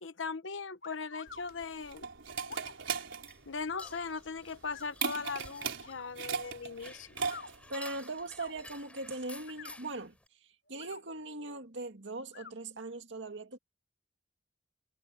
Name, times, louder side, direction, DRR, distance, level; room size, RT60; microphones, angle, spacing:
voice 1, 0.0-2.1 3.5-7.2, left 4 dB, 80° left, 1.1 m, -39 dB
sound 1, 0.8-1.4 2.4-2.7 3.7-4.0 4.7-4.9 5.8-6.1 7.2-7.5 8.2-8.5 9.4-9.8 10.7-11.0 12.3-12.5, left 5 dB, 60° left, 3.4 m, -48 dB
sound 2, 1.3-7.7, right 6 dB, 90° right, 3.7 m, -38 dB
sound 3, 2.6-10.3, left 1 dB, 5° left, 4.1 m, -53 dB
voice 2, 7.5-10.2 10.7-13.6, right 2 dB, 70° right, 2.3 m, -40 dB
head